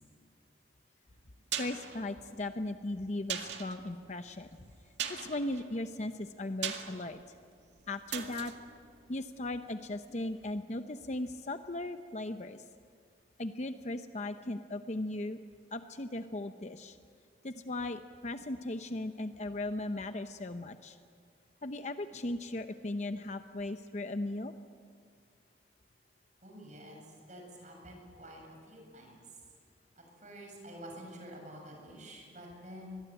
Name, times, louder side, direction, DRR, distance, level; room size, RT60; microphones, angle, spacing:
sound 1, 1.1-10.0 10.3-10.4, right 8 dB, 90° right, 2.0 m, -42 dB
voice 1, 1.6-4.5 5.1-7.2 7.9-8.5 9.1-12.6 13.4-15.4 15.7-17.0 17.4-21.0 21.6-24.5, left 2 dB, 40° left, 8 dB, 0.8 m, -37 dB
voice 2, 26.4-29.2 30.0-33.0, equal, 45° right, 1 dB, 7.4 m, -49 dB
25.0 x 21.5 x 9.0 m, 2.1 s
head